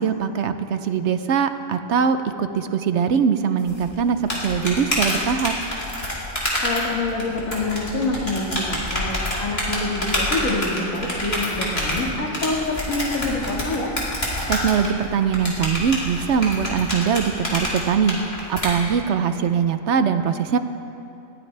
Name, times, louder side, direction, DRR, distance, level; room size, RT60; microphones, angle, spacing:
voice 1, 0.0-5.5 14.5-20.6, right 7 dB, 65° right, 10 dB, 0.9 m, -22 dB
sound 1, 3.7-18.7, left 1 dB, 35° left, 3.0 m, -27 dB
voice 2, 6.6-14.0, left 2 dB, 85° left, -2 dB, 2.4 m, -26 dB
20.0 x 15.0 x 3.3 m, 2.7 s
omnidirectional pair, 1.4 m